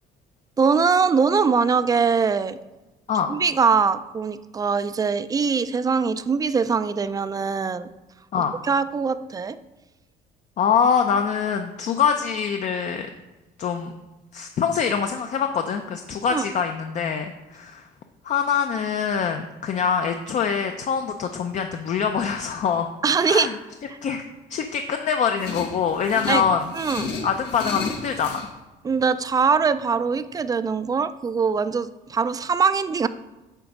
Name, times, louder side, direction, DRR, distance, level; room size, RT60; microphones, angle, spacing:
voice 1, 0.6-2.6 3.3-7.9 8.6-9.6 16.3-16.4 23.0-23.5 26.3-26.4 26.7-27.1 28.8-33.1, right 5 dB, 20° right, 13 dB, 0.3 m, -22 dB
voice 2, 10.6-13.1 13.6-13.9 14.3-17.9 18.2-22.9 23.3-23.5 24.0-24.2 24.5-26.6 27.2-28.5, left 7 dB, 45° left, 5 dB, 0.5 m, -24 dB
sound 1, 25.4-28.5, left 4 dB, 80° left, 1.0 m, -33 dB
9.0 x 3.4 x 5.2 m, 1.1 s
cardioid pair, 110°, 17 cm